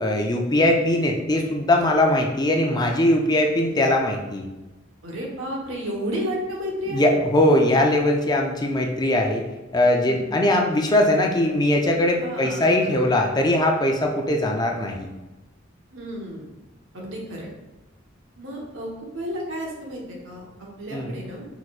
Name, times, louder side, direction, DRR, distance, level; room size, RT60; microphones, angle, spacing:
voice 1, 0.0-4.5 6.9-9.4 9.7-15.1 20.9-21.2, left 1 dB, 20° left, 2 dB, 0.5 m, -20 dB
voice 2, 5.0-7.2 9.9-10.7 12.2-13.1 15.9-16.5 16.9-17.5 18.4-21.5, equal, 80° right, -2 dB, 1.1 m, -32 dB
4.6 x 4.3 x 2.4 m, 1.1 s
head